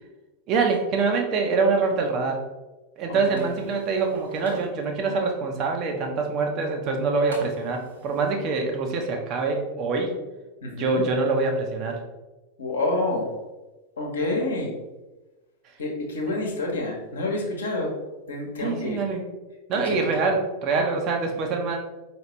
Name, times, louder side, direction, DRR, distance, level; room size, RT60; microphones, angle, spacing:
voice 1, 0.5-2.4 3.0-10.1 10.8-12.0 18.6-19.2 19.7-21.8, right 4 dB, 35° right, 3 dB, 0.7 m, -25 dB
voice 2, 3.1-3.5 10.6-11.1 12.6-13.3 14.0-14.7 15.8-17.9 18.3-19.0 19.8-20.2, left 2 dB, 70° left, 0 dB, 1.0 m, -28 dB
sound 1, 3.4-4.7 7.3-8.3, right 2 dB, 70° right, 1.0 m, -44 dB
4.8 x 3.0 x 3.0 m, 1.1 s
figure-of-eight pair, 90°, 0 cm